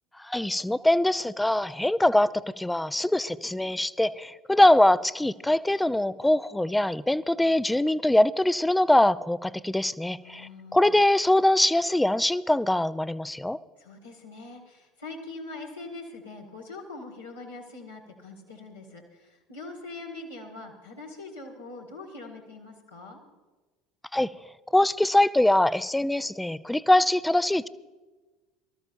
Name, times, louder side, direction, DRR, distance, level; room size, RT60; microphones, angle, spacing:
voice 1, 0.2-13.6 24.1-24.3 24.7-27.7, left 1 dB, 5° left, 17 dB, 0.4 m, -23 dB
voice 2, 10.2-10.9 13.8-23.2, left 3 dB, 80° left, -3 dB, 1.9 m, -43 dB
23.5 x 13.5 x 2.6 m, 1.2 s
figure-of-eight pair, 65°, 0 cm